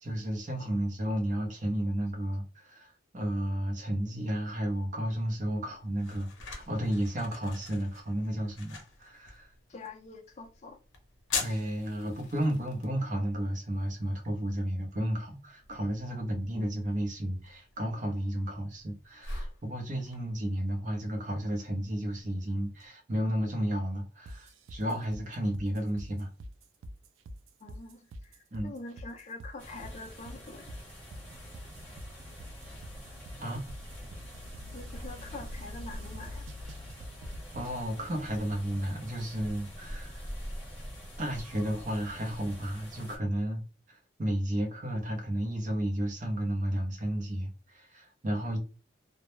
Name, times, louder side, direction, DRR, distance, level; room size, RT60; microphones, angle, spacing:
voice 1, 0.0-9.5 11.4-26.3 28.5-28.7 33.4-33.6 37.5-40.3 41.2-43.6 43.9-48.6, right 1 dB, 40° right, 0.6 m, -32 dB
sound 1, 5.3-22.9, left 4 dB, 90° left, 0.6 m, -45 dB
voice 2, 9.7-10.8 27.6-30.8 34.7-36.5, left 3 dB, 35° left, 0.4 m, -45 dB
sound 2, 24.3-37.8, equal, 85° right, 0.3 m, -46 dB
sound 3, 29.6-43.2, equal, 10° left, 0.8 m, -45 dB
2.2 x 2.0 x 3.0 m
head